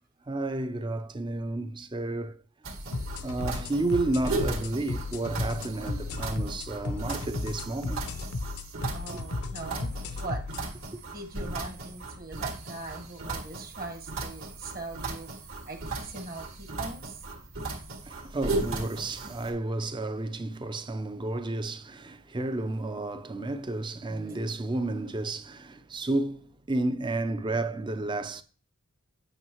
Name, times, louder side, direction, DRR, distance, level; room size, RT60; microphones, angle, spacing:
voice 1, 0.3-2.4 3.2-8.1 9.1-9.2 18.0-28.4, right 2 dB, 20° right, 0.5 m, -31 dB
sound 1, 2.6-19.5, right 2 dB, 60° right, 2.1 m, -36 dB
sound 2, 2.9-10.7, left 3 dB, 75° left, 0.7 m, -35 dB
voice 2, 8.8-10.5 11.0-15.3 15.6-17.3 19.2-19.3 24.1-24.5, right 2 dB, 40° right, 1.4 m, -41 dB
9.0 x 6.3 x 3.0 m
head